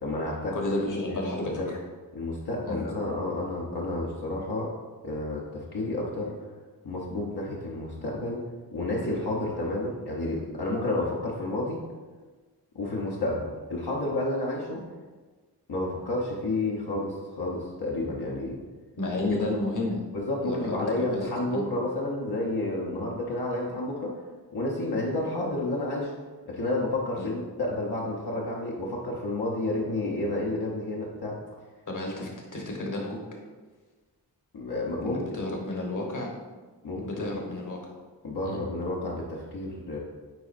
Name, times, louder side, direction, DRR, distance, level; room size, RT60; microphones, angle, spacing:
voice 1, 0.0-0.6 1.1-1.2 1.6-1.7 2.1-4.7 5.0-6.3 6.8-8.4 8.7-11.8 12.7-14.8 15.7-18.6 19.2-19.3 20.1-24.2 24.5-26.1 26.5-31.4 34.5-35.5 36.8-37.3 38.2-40.0, left 2 dB, 65° left, -4 dB, 1.0 m, -30 dB
voice 2, 0.5-1.8 2.7-2.8 19.0-20.1 20.4-21.6 27.2-27.3 31.9-33.3 35.1-36.3 37.0-37.9 38.4-38.6, left 2 dB, 45° left, 0 dB, 1.2 m, -32 dB
9.1 x 4.1 x 2.6 m, 1.3 s
wide cardioid pair, 90°, 41 cm